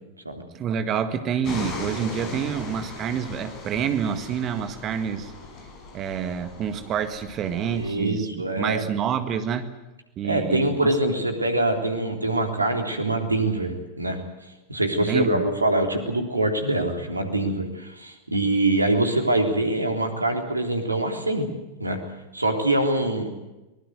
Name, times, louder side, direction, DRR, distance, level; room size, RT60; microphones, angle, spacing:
voice 1, 0.5-5.3 5.9-9.7 10.2-11.0 15.0-15.4, right 8 dB, 30° right, 10 dB, 1.8 m, -28 dB
sound 1, 1.4-7.9, left 2 dB, 35° left, 6.8 m, -38 dB
voice 2, 7.7-8.8 10.2-14.2 14.7-21.5 21.8-22.0 22.3-23.3, right 1 dB, 80° right, 5 dB, 3.5 m, -24 dB
23.5 x 20.5 x 8.0 m, 1.0 s
figure-of-eight pair, 90°, 0 cm